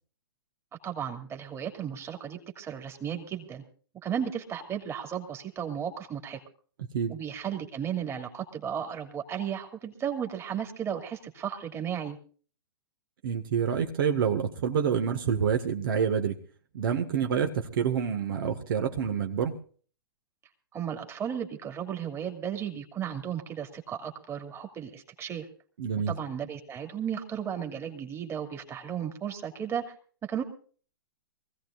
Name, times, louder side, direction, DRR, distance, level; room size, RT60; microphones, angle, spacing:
voice 1, 0.8-3.6 4.0-6.4 7.1-12.2 20.7-25.5 26.1-29.8 30.2-30.4, right 8 dB, 20° right, 4 dB, 2.6 m, -34 dB
voice 2, 13.2-16.4 16.7-19.5 25.8-26.1, right 7 dB, 60° right, 5 dB, 1.8 m, -27 dB
24.0 x 16.0 x 2.5 m, 0.42 s
hypercardioid pair, 120°, 13 cm